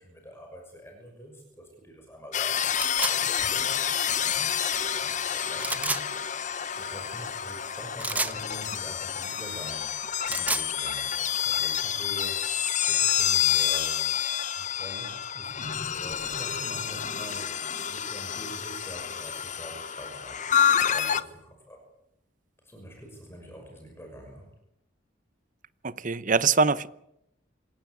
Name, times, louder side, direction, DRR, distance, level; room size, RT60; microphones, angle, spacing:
voice 1, 0.0-6.0 6.8-10.0 10.2-12.4 12.8-14.3 14.6-17.6 17.9-21.8 22.6-24.5, equal, 15° left, 6.0 m, -45 dB
sound 1, 2.3-21.2, left 9 dB, 40° left, 1.0 m, -28 dB
sound 2, 2.8-3.2 5.6-6.0 8.0-8.4 10.1-10.7, right 2 dB, 10° right, 1.2 m, -29 dB
voice 2, 25.8-26.9, right 5 dB, 45° right, 0.9 m, -23 dB
27.0 x 17.0 x 8.4 m
head